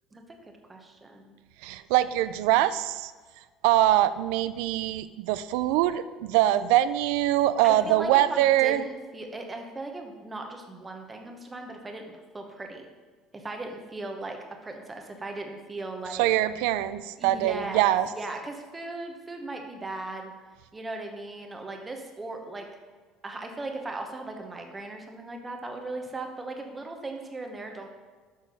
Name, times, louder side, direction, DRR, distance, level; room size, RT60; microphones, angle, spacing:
voice 1, 0.7-1.4 7.6-12.0 12.3-12.9 13.3-16.3 17.2-20.3 20.7-22.7 23.2-27.9, right 2 dB, 15° right, 3 dB, 0.9 m, -38 dB
voice 2, 1.6-3.1 3.6-8.9 16.2-18.1, right 13 dB, 90° right, 14 dB, 0.4 m, -23 dB
6.4 x 6.1 x 5.2 m, 1.5 s
cardioid pair, 165°, 0 cm